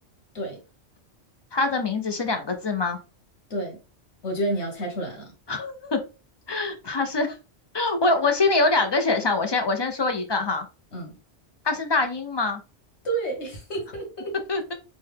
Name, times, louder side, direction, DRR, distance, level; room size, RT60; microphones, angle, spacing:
voice 1, 1.5-3.0 5.5-6.0 6.5-7.3 7.7-10.6 11.6-12.6 14.5-14.7, left 3 dB, 40° left, 0.4 m, -24 dB
voice 2, 4.2-5.3 10.9-11.2 13.0-14.4, right 2 dB, 80° left, 1.7 m, -30 dB
4.1 x 2.1 x 3.4 m
omnidirectional pair, 1.1 m